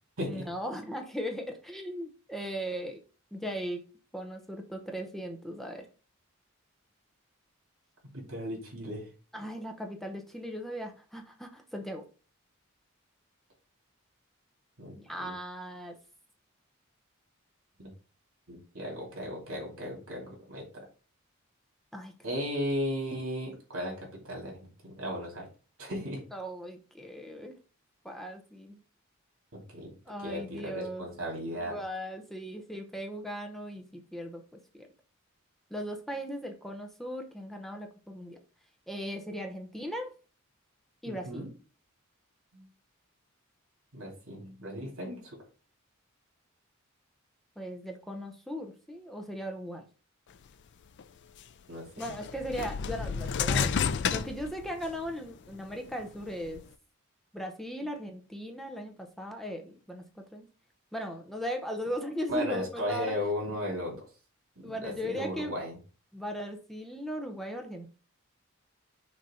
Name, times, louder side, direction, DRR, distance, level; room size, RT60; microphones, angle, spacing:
voice 1, 0.3-3.0 3.3-3.8 4.1-5.9 9.3-12.0 14.9-16.0 21.9-22.1 26.3-27.6 28.0-28.8 30.1-31.1 31.5-34.4 34.7-34.9 35.7-38.4 38.9-40.1 41.0-41.4 47.6-49.9 52.0-56.6 57.3-60.5 60.9-63.1 64.6-65.6 66.1-67.9, equal, ahead, 4 dB, 0.7 m, -38 dB
voice 2, 8.1-9.1 14.8-15.3 17.8-17.9 18.5-20.6 22.2-25.5 25.8-26.2 29.5-29.9 30.2-31.8 41.1-41.5 42.5-42.6 43.9-45.4 51.7-52.1 62.3-64.0 64.6-65.8, equal, 70° right, -1 dB, 2.7 m, -36 dB
sound 1, 51.0-51.1 52.0-55.1 55.6-56.6, left 6 dB, 55° left, 0.4 m, -31 dB
6.3 x 2.8 x 5.5 m, 0.37 s
head